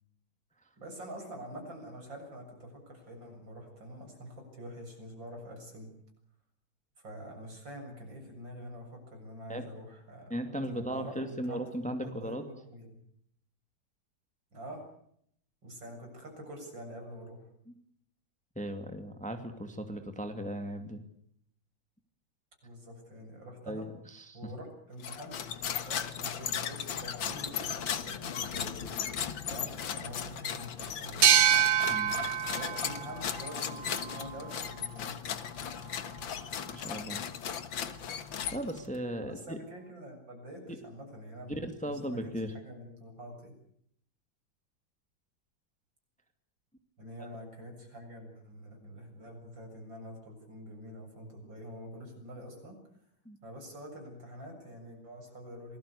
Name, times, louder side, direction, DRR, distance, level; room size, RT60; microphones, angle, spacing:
voice 1, 0.8-5.9 7.0-11.6 11.9-13.0 14.5-14.8 15.6-17.4 22.6-23.9 24.3-25.4 25.8-28.8 29.5-31.4 32.5-35.2 39.2-42.2 42.5-43.5 47.0-52.8 53.4-55.8, equal, 70° right, 3 dB, 8.2 m, -46 dB
voice 2, 10.3-12.4 17.7-17.8 18.6-21.0 23.7-24.5 31.9-32.2 36.7-37.2 38.5-39.6 40.7-40.8 41.5-42.6 47.2-47.3 53.3-53.4, equal, 5° left, 7 dB, 2.1 m, -37 dB
sound 1, 25.0-39.0, left 8 dB, 75° left, 2.2 m, -37 dB
sound 2, 31.2-34.6, right 9 dB, 90° right, 2.2 m, -27 dB
26.5 x 20.0 x 8.4 m, 0.69 s
omnidirectional pair, 2.1 m